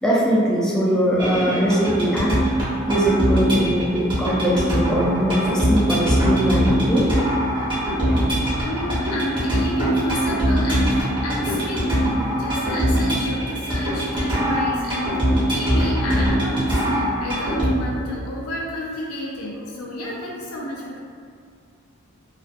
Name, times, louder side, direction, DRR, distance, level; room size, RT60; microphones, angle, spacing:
voice 1, 0.0-2.4 2.9-7.1 8.0-8.5, equal, 5° left, -7 dB, 0.3 m, -21 dB
sound 1, 1.2-17.7, equal, 20° right, 0.7 m, -22 dB
voice 2, 8.6-15.2 15.5-21.0, left 1 dB, 80° left, -4 dB, 0.4 m, -31 dB
2.4 x 2.2 x 2.5 m, 2.2 s
head